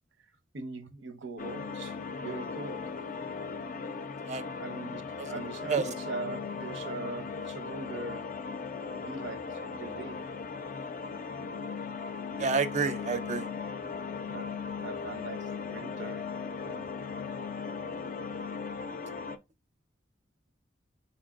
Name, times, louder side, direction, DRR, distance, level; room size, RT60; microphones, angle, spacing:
voice 1, 0.5-2.9 4.6-8.3 9.0-10.2 12.8-12.9 14.3-16.3 16.7-16.9, right 4 dB, 90° right, 0.7 m, -41 dB
sound 1, 1.4-19.4, left 5 dB, 45° left, 0.4 m, -38 dB
voice 2, 12.4-13.5, right 5 dB, 40° right, 0.5 m, -29 dB
4.5 x 4.2 x 2.4 m
head